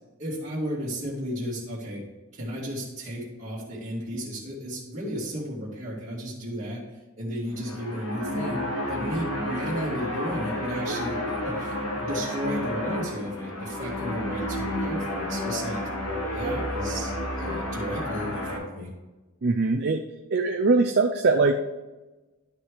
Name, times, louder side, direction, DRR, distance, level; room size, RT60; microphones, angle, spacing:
voice 1, 0.2-2.0 2.3-6.8 7.2-15.8 16.3-18.9, equal, 35° right, -9 dB, 2.1 m, -33 dB
sound 1, 7.5-18.6, left 1 dB, 70° left, 1.9 m, -31 dB
voice 2, 19.4-20.0 20.3-21.5, right 3 dB, 50° right, 4 dB, 0.5 m, -21 dB
11.5 x 6.1 x 3.2 m, 1.1 s
head